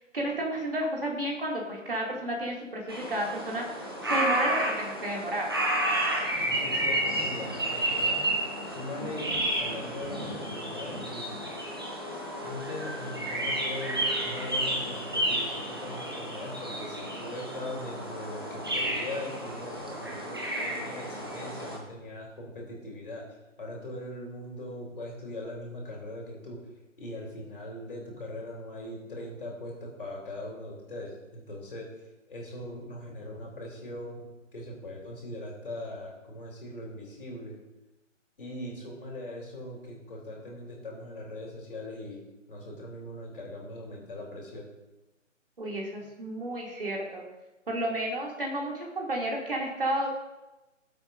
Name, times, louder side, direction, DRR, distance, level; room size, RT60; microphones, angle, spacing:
voice 1, 0.0-5.5 45.6-47.2 47.7-50.1, right 1 dB, 45° right, -2 dB, 2.7 m, -32 dB
sound 1, 2.9-21.8, right 1 dB, 20° right, 0.8 m, -31 dB
voice 2, 6.4-8.2 8.6-11.3 12.4-23.3 23.6-26.6 27.0-31.9 32.3-37.5 38.4-42.2 42.5-44.7, left 1 dB, 45° left, -2 dB, 3.3 m, -40 dB
17.5 x 7.8 x 2.6 m, 1.0 s
figure-of-eight pair, 155°, 39 cm